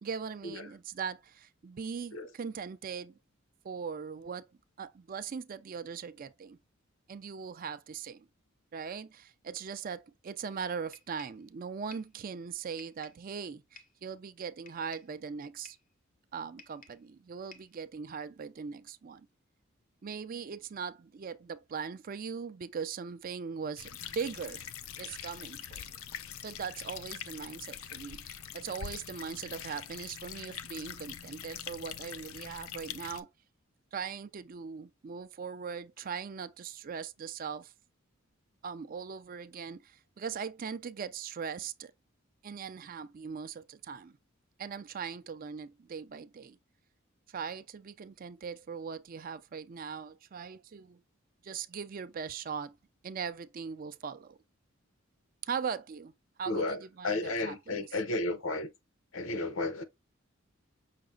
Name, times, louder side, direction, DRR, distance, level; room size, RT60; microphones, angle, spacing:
voice 1, 0.0-3.2 3.6-4.5 4.8-6.6 7.1-8.3 8.7-15.8 16.3-19.3 20.0-24.7 25.0-25.9 26.4-33.3 33.9-37.7 38.6-41.9 42.4-44.2 44.6-46.6 47.3-51.0 51.4-52.8 53.0-54.4 55.4-56.1 56.4-57.9, right 6 dB, 45° right, 0.4 m, -40 dB
sound 1, 10.9-11.4 11.9-12.2 12.8-13.3 13.8-14.0 14.7-15.2 15.6-15.9 16.6-17.1 17.5-17.8, left 4 dB, 40° left, 0.7 m, -55 dB
sound 2, 23.8-33.2, left 9 dB, 90° left, 0.5 m, -44 dB
voice 2, 56.4-58.7 59.1-59.8, left 2 dB, 70° left, 0.8 m, -33 dB
5.8 x 2.1 x 3.8 m
head